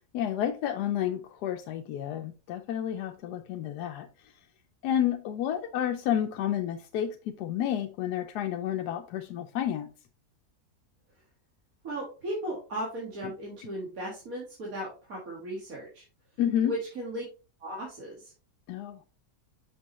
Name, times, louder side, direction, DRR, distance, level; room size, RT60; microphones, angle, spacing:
voice 1, 0.1-4.1 4.8-9.9 16.4-16.8 18.7-19.0, left 10 dB, 90° left, 1.2 m, -30 dB
voice 2, 11.8-16.0 16.6-17.2 17.6-18.3, right 1 dB, 60° right, 2.3 m, -36 dB
6.2 x 6.1 x 3.0 m
omnidirectional pair, 1.7 m